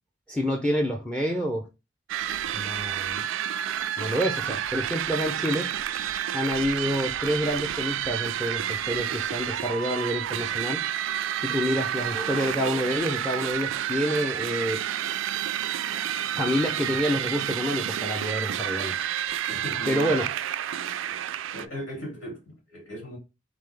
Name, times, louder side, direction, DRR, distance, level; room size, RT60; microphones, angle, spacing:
voice 1, 0.3-1.7 2.5-3.3 4.0-5.7 6.3-10.8 11.4-14.8 16.4-19.0 19.9-20.3, equal, 5° left, 0.6 m, -28 dB
sound 1, 2.1-21.7, right 10 dB, 80° right, 0.3 m, -30 dB
voice 2, 19.5-20.2 21.1-21.2 21.5-23.2, equal, 75° left, 2.5 m, -38 dB
3.8 x 3.7 x 3.3 m
head